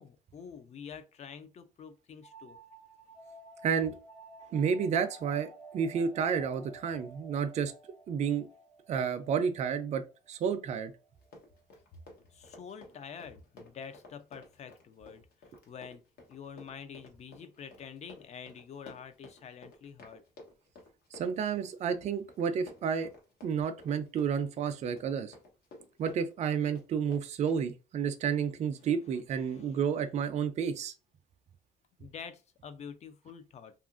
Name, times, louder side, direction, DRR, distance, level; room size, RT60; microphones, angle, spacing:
voice 1, 0.0-2.6 12.3-16.0 16.3-20.2 29.4-29.8 32.0-33.7, left 7 dB, 40° left, 0.5 m, -47 dB
sound 1, 2.2-11.6, right 2 dB, 15° left, 0.7 m, -53 dB
voice 2, 3.6-3.9 4.5-7.7 8.1-8.5 8.9-10.0 10.3-10.9 21.1-23.1 23.4-25.3 26.0-30.9, right 7 dB, 40° right, 0.4 m, -31 dB
Run, 11.2-27.7, left 2 dB, 70° left, 1.0 m, -54 dB
2.8 x 2.4 x 2.4 m
cardioid pair, 110°, 17 cm